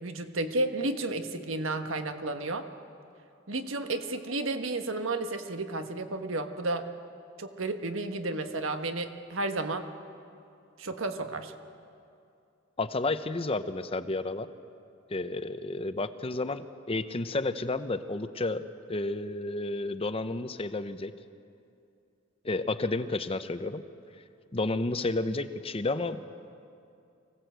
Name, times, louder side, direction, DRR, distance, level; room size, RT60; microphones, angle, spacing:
voice 1, 0.0-2.7 3.5-6.9 7.4-9.9 10.8-11.5, right 2 dB, 85° right, 7 dB, 1.4 m, -32 dB
voice 2, 12.8-14.5 15.1-21.1 22.4-23.8 24.5-26.2, left 2 dB, 30° left, 11 dB, 0.7 m, -31 dB
25.0 x 16.5 x 8.0 m, 2.5 s
head